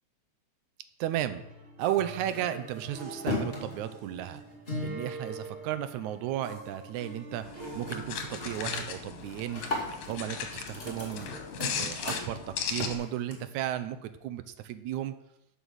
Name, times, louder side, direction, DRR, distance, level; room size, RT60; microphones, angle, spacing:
voice 1, 1.0-1.4 1.8-4.4 4.8-7.5 7.7-9.6 10.1-11.4 11.7-15.1, right 12 dB, 90° right, 11 dB, 2.1 m, -34 dB
sound 1, 1.2-8.5, right 1 dB, 20° right, 1.3 m, -47 dB
sound 2, 1.9-6.5 6.8-7.2 7.5-8.0 8.3-13.6, left 1 dB, 20° left, 2.1 m, -38 dB
sound 3, 7.4-12.9, left 7 dB, 75° left, 2.4 m, -37 dB
11.5 x 5.6 x 6.3 m, 0.85 s
omnidirectional pair, 3.3 m